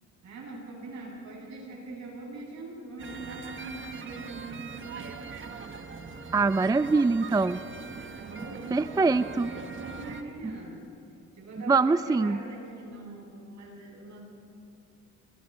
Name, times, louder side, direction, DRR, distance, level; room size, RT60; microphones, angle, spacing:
voice 1, 0.2-5.2 8.2-11.0 11.3-14.2, right 2 dB, 65° right, -2 dB, 7.7 m, -42 dB
sound 1, 3.0-10.2, right 5 dB, 40° right, 1.5 m, -41 dB
voice 2, 6.3-7.6 8.7-9.5 10.4-10.6 11.7-12.4, right 4 dB, 15° right, 14 dB, 0.4 m, -24 dB
30.0 x 24.5 x 4.5 m, 2.7 s
cardioid pair, 90°, 30 cm